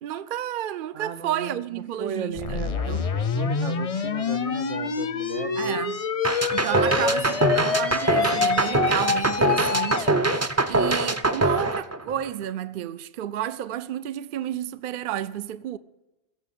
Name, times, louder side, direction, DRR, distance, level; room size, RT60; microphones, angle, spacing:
voice 1, 0.0-3.1 5.6-6.0 6.5-15.8, right 11 dB, 55° right, 0.7 m, -31 dB
voice 2, 0.9-5.8 6.9-8.0, right 6 dB, 90° right, 1.4 m, -36 dB
sound 1, 2.4-10.1, left 5 dB, 40° left, 0.6 m, -26 dB
sound 2, 6.2-12.4, right 2 dB, 20° right, 0.5 m, -23 dB
16.5 x 7.1 x 8.4 m
omnidirectional pair, 1.2 m